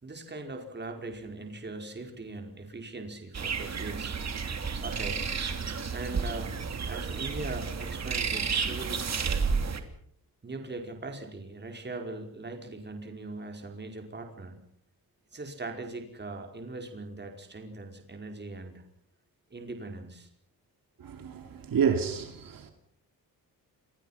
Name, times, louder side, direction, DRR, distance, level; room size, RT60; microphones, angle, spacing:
voice 1, 0.0-4.1 4.8-5.2 5.9-6.6 6.8-9.0 10.4-14.6 15.3-18.8 19.5-20.3, right 2 dB, 30° right, 5.0 m, -40 dB
sound 1, 3.3-9.8, right 5 dB, 45° right, 3.2 m, -31 dB
voice 2, 21.0-22.7, right 7 dB, 70° right, 2.9 m, -29 dB
29.5 x 23.0 x 5.8 m
cardioid pair, 125°, 36 cm